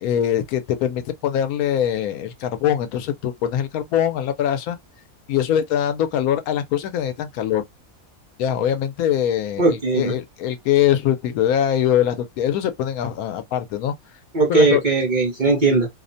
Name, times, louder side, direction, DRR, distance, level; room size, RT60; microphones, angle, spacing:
voice 1, 0.0-4.8 5.3-7.6 8.4-13.9 14.5-14.8, left 10 dB, 80° left, 1.0 m, -22 dB
voice 2, 9.6-10.1 14.3-15.9, right 3 dB, 40° right, 0.7 m, -18 dB
2.7 x 2.1 x 2.5 m
omnidirectional pair, 1.5 m